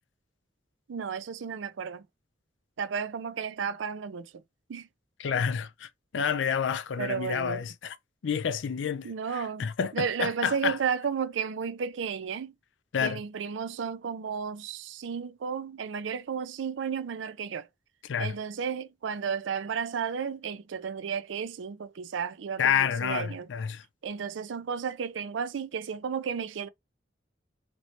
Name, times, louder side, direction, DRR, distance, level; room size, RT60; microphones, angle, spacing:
voice 1, 0.9-2.0 2.8-4.3 4.7-4.9 7.0-7.6 9.0-12.5 13.0-17.7 18.2-23.5 24.0-26.7, right 6 dB, 85° right, 0.4 m, -33 dB
voice 2, 5.2-8.0 8.2-10.8 12.9-13.2 18.1-18.3 22.6-23.8, left 7 dB, 85° left, 0.4 m, -29 dB
3.1 x 3.0 x 2.7 m
head